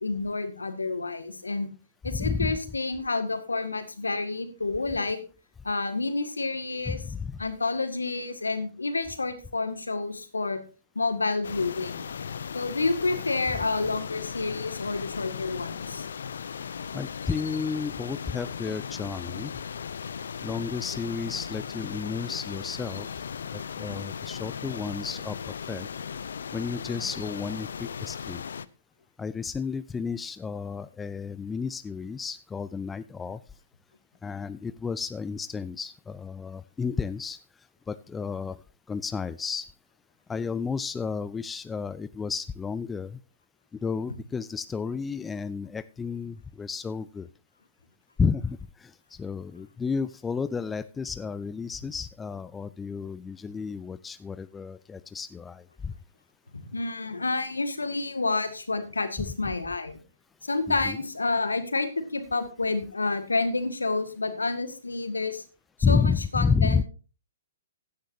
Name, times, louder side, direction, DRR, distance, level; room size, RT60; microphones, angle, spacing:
voice 1, 0.0-1.7 2.0-5.2 5.6-7.0 7.4-10.6 11.0-12.0 12.5-16.1 56.5-60.0 60.4-65.4 65.9-66.8, left 3 dB, 80° left, 8 dB, 2.0 m, -29 dB
voice 2, 2.1-2.6 6.9-7.4 16.9-19.5 20.4-23.1 23.5-25.4 25.7-25.9 26.5-28.4 29.2-33.4 34.2-37.4 37.9-38.6 38.9-39.7 40.3-43.2 43.7-47.3 48.2-55.9 60.7-61.0 65.8-66.8, left 5 dB, 10° left, 14 dB, 0.4 m, -31 dB
sound 1, 11.4-28.7, left 7 dB, 65° left, 0.6 m, -37 dB
15.5 x 10.5 x 2.7 m, 0.34 s
figure-of-eight pair, 120°, 0 cm